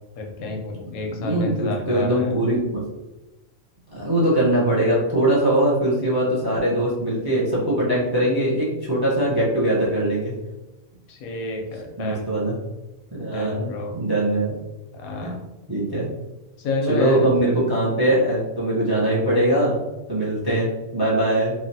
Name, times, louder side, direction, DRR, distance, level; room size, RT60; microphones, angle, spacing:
voice 1, 0.1-2.3 11.1-12.3 13.3-13.9 14.9-15.4 16.6-17.3, left 3 dB, 90° left, 1 dB, 1.1 m, -28 dB
voice 2, 1.1-2.7 3.9-10.3 12.0-12.6 13.1-14.5 15.2-15.3 15.7-16.1 16.9-19.7 20.1-21.5, right 1 dB, 25° right, -6 dB, 0.5 m, -21 dB
3.2 x 2.3 x 2.7 m, 1.0 s
omnidirectional pair, 1.4 m